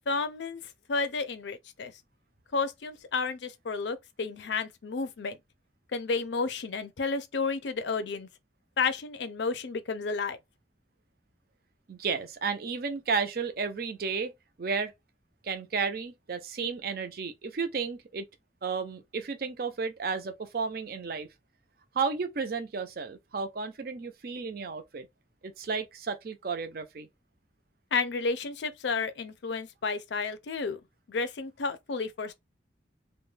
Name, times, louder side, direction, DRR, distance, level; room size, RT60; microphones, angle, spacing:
voice 1, 0.1-1.9 2.5-5.4 5.9-8.3 8.8-10.4 27.9-30.8 31.1-32.3, left 4 dB, 75° left, 0.5 m, -31 dB
voice 2, 11.9-14.3 14.6-14.9 15.4-18.2 18.6-21.3 21.9-25.1 25.4-27.1, right 5 dB, 55° right, 0.4 m, -33 dB
2.3 x 2.1 x 3.1 m
head